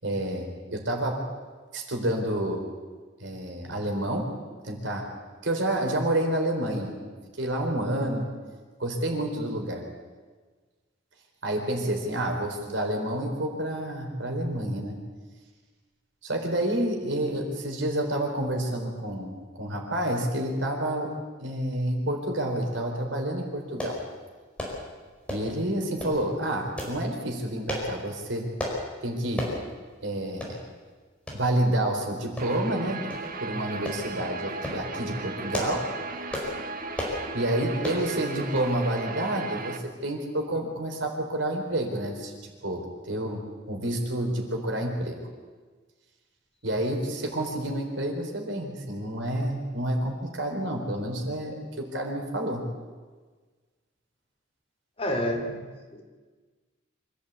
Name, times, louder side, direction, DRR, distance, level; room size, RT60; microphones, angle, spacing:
voice 1, 0.0-1.3 1.7-2.7 3.2-4.3 4.6-5.1 5.4-8.3 8.8-9.8 11.4-15.0 16.2-21.1 21.4-24.0 25.3-28.5 29.0-29.5 30.0-30.6 31.3-33.1 33.4-35.9 37.3-42.4 42.6-43.4 43.7-45.2 46.6-52.6, right 1 dB, 70° right, 2 dB, 4.2 m, -29 dB
sound 1, 23.8-24.0 24.6-24.8 25.3-25.5 26.0-26.2 26.8-27.0 27.7-27.9 28.6-28.8 29.4-29.6 30.0-30.1 30.4-30.6 31.3-31.4 32.4-32.7 33.1-33.2 33.9-34.0 34.5-34.8 35.3-35.8 36.3-36.5 36.9-37.2 37.8-38.0 38.6-38.7 39.0-39.1, left 1 dB, 5° left, 5.1 m, -32 dB
Guitar, 32.4-39.8, right 3 dB, 45° right, 1.4 m, -36 dB
voice 2, 55.0-56.0, equal, 30° left, 3 dB, 2.9 m, -30 dB
25.5 x 14.0 x 8.4 m, 1.4 s
head